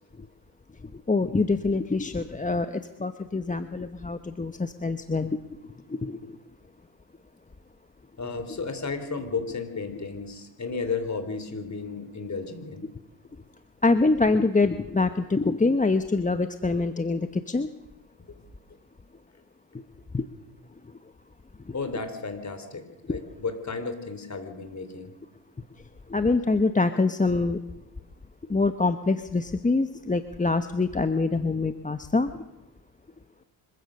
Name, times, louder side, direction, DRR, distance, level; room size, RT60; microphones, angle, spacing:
voice 1, 0.8-6.4 13.8-17.7 20.1-20.2 20.8-20.9 21.6-21.7 23.1-23.2 26.1-27.6 28.5-32.4, left 3 dB, 15° left, 9 dB, 1.1 m, -25 dB
voice 2, 8.2-12.9 18.3-18.4 21.7-25.1, left 4 dB, 35° left, 8 dB, 4.1 m, -33 dB
25.5 x 15.5 x 6.7 m, 1.0 s
cardioid pair, 80°, 50 cm